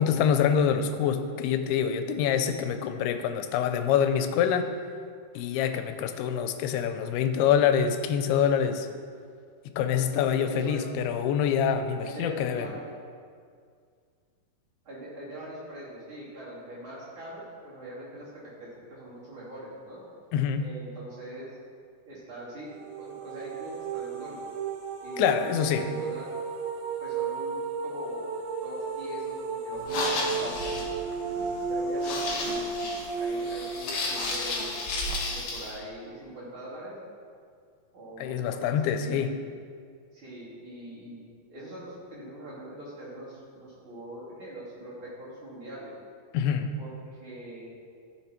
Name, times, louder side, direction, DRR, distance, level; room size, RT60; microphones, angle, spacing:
voice 1, 0.0-4.7 5.4-8.9 9.8-12.7 20.3-20.7 25.2-25.9 38.2-39.4 46.3-46.7, left 8 dB, 85° left, 8 dB, 2.6 m, -25 dB
voice 2, 10.4-10.8 12.0-12.8 14.8-18.3 18.6-20.0 20.6-21.5 22.1-22.7 23.0-24.4 25.0-26.2 27.0-27.6 27.8-28.2 28.6-30.8 31.7-34.6 35.3-37.0 37.9-38.2 38.5-39.4 40.1-41.2 41.5-41.8 42.1-45.9 46.8-47.7, right 1 dB, 35° right, -9 dB, 3.5 m, -42 dB
sound 1, 22.7-35.5, right 4 dB, 75° right, 1.7 m, -34 dB
sound 2, 29.8-35.7, left 2 dB, 60° left, 1.7 m, -33 dB
13.5 x 6.4 x 4.4 m, 2.1 s
omnidirectional pair, 4.5 m